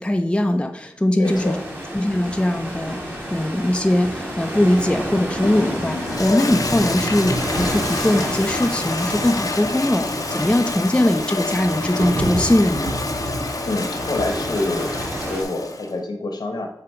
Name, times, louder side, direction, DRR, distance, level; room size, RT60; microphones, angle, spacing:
voice 1, 0.0-1.6 1.9-13.0, left 1 dB, 15° left, 5 dB, 0.6 m, -21 dB
voice 2, 1.1-1.6 6.8-6.9 13.7-14.9 15.2-16.7, left 2 dB, 80° left, 3 dB, 1.2 m, -26 dB
sound 1, 1.2-15.4, equal, 25° right, 1.9 m, -31 dB
Toilet flush, 4.9-15.9, left 3 dB, 60° left, 0.7 m, -28 dB
sound 2, 6.1-15.2, right 1 dB, 75° right, 1.4 m, -32 dB
7.6 x 2.9 x 4.4 m, 0.74 s
cardioid pair, 40°, 7 cm